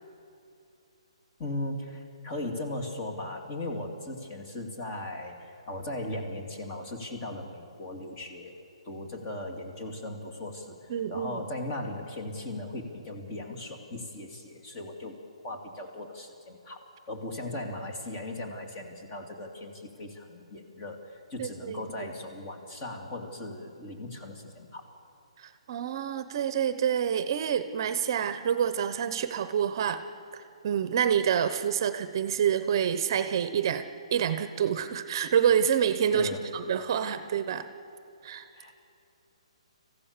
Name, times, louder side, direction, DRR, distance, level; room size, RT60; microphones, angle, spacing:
voice 1, 1.4-8.5 8.8-15.2 15.4-16.8 17.1-24.9 36.1-36.5 38.5-38.8, left 1 dB, 25° left, 3 dB, 2.5 m, -38 dB
voice 2, 10.9-11.4 21.4-21.8 25.4-30.0 30.3-37.7 38.2-38.5, right 8 dB, 40° right, 11 dB, 0.9 m, -27 dB
26.5 x 15.5 x 6.8 m, 2.6 s
hypercardioid pair, 160°, 3 cm